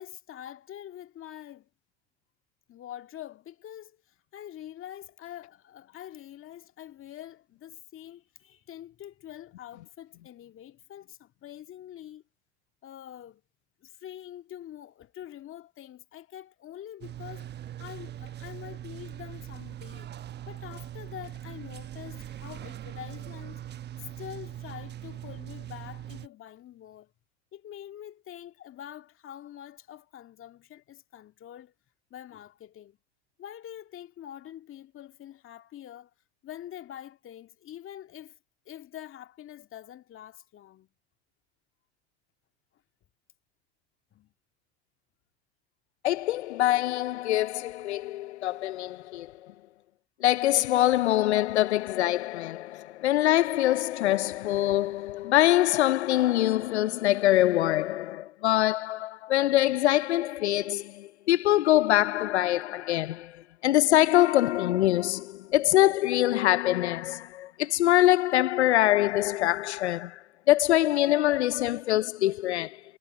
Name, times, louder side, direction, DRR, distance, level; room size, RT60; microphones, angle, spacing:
voice 1, 0.0-1.7 2.7-12.2 12.8-13.4 13.8-17.5 17.8-20.1 20.5-23.6 24.0-27.1 27.5-31.7 32.1-33.0 33.4-36.1 36.4-38.4 38.7-40.9 44.1-44.3, left 11 dB, 40° left, 2.1 m, -45 dB
sound 1, 17.0-26.3, right 11 dB, 30° right, 1.0 m, -41 dB
voice 2, 46.0-49.3 50.2-72.8, left 14 dB, 90° left, 0.5 m, -24 dB
hypercardioid pair, 85°, 32 cm